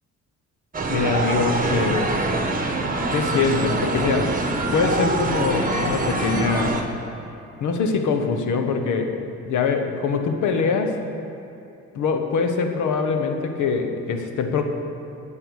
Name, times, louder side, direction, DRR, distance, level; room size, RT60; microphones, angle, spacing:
sound 1, 0.7-6.8, right 2 dB, 30° right, 1.4 m, -24 dB
voice 1, 0.9-2.1 3.1-4.4 4.7-6.8 7.6-11.0 11.9-14.6, left 5 dB, 80° left, 5 dB, 1.2 m, -23 dB
16.5 x 5.6 x 6.4 m, 2.8 s
cardioid pair, 90°, 30 cm